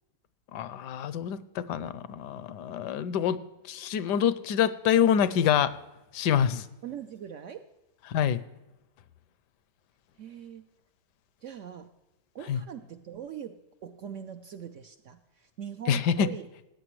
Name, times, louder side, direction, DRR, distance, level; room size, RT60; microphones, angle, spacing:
voice 1, 0.5-3.4 3.7-5.7 6.1-6.7 8.1-8.4 12.5-12.6 15.9-16.3, left 8 dB, 80° left, 16 dB, 1.2 m, -26 dB
voice 2, 6.8-7.7 10.2-10.6 11.4-11.9 12.3-16.5, right 9 dB, 75° right, 8 dB, 0.7 m, -42 dB
15.5 x 8.9 x 3.1 m, 0.98 s
omnidirectional pair, 1.9 m